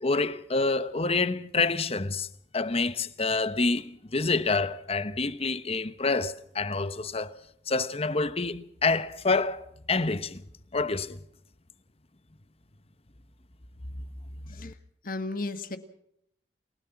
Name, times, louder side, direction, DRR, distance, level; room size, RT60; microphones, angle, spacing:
voice 1, 0.0-2.3 2.5-7.3 7.7-10.4 10.7-11.2 14.6-14.7, left 3 dB, 35° left, 1.0 m, -27 dB
voice 2, 15.0-15.8, left 2 dB, 50° left, 1.9 m, -34 dB
29.0 x 17.0 x 5.9 m
head